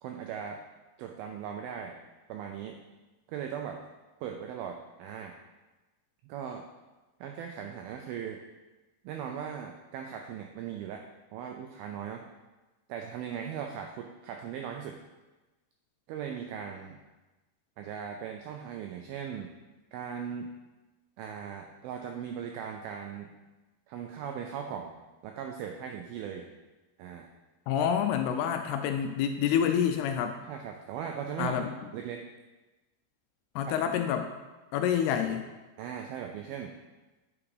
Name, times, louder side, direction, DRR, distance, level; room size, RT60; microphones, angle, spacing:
voice 1, 0.0-0.6 1.0-2.0 2.3-2.8 3.3-3.8 4.2-5.3 6.2-6.7 7.2-8.4 9.0-11.0 11.3-12.2 12.9-15.0 16.1-17.0 17.8-19.5 19.9-20.5 21.2-23.3 23.9-24.9 25.2-26.5 27.0-27.3 30.5-31.7 31.9-32.2 33.7-33.8 35.8-36.7, right 8 dB, 85° right, 3 dB, 2.1 m, -38 dB
voice 2, 27.7-30.4 31.4-31.7 33.6-34.3 34.7-35.5, left 8 dB, 80° left, 6 dB, 2.4 m, -28 dB
8.7 x 4.8 x 4.8 m, 1.1 s
omnidirectional pair, 4.9 m